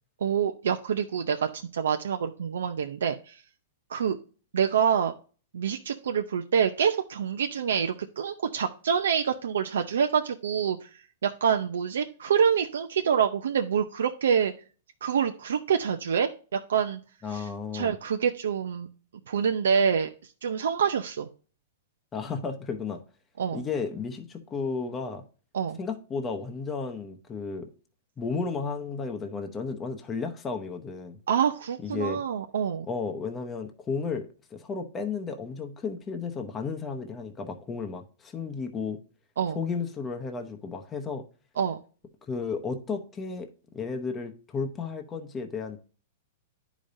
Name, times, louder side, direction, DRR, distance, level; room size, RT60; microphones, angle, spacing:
voice 1, 0.2-3.4 3.9-4.2 4.5-5.1 5.5-14.5 15.0-17.0 17.3-18.9 19.3-20.1 20.4-21.3 23.4-23.6 25.5-25.8 31.3-32.9 39.4-39.6 41.6-41.8, right 7 dB, 90° right, 0.6 m, -26 dB
voice 2, 17.2-18.0 22.1-23.0 23.5-25.2 25.8-27.7 28.2-31.2 31.8-32.2 32.9-39.0 39.5-41.2 42.3-43.5 43.7-45.8, left 5 dB, 15° left, 0.8 m, -33 dB
10.0 x 5.1 x 2.6 m
hypercardioid pair, 150°, 0 cm